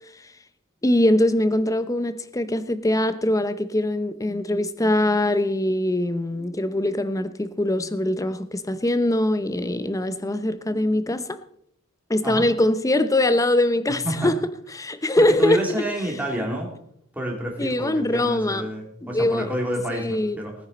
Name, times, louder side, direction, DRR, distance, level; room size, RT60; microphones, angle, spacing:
voice 1, 0.8-11.4 12.1-14.4 14.7-15.6 17.6-18.7 19.0-19.5 19.9-20.4, left 1 dB, 15° left, 0.7 m, -22 dB
voice 2, 15.2-16.7 17.1-20.7, equal, 5° right, 3.0 m, -28 dB
19.0 x 9.5 x 4.2 m
head